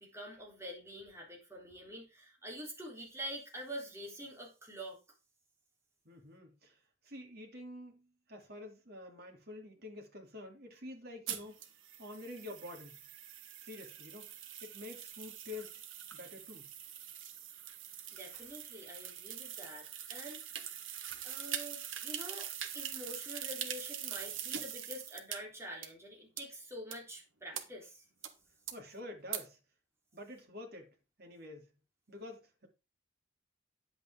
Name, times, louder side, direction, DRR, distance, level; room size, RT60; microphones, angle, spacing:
voice 1, 0.0-5.0 18.1-20.4 21.1-22.5 22.7-28.0, equal, 15° right, 3.7 m, -46 dB
voice 2, 6.0-6.8 7.0-11.6 12.0-13.0 13.6-15.7 16.1-16.7 28.7-29.6 30.1-31.7 32.1-32.7, left 2 dB, 50° right, 3.0 m, -48 dB
sound 1, 11.3-25.4 25.8-25.9 26.4-26.5 26.9-27.0 27.5-27.6 28.2-28.3 28.7-28.8 29.3-29.4, right 9 dB, 80° right, 1.4 m, -43 dB
10.0 x 8.5 x 3.8 m
head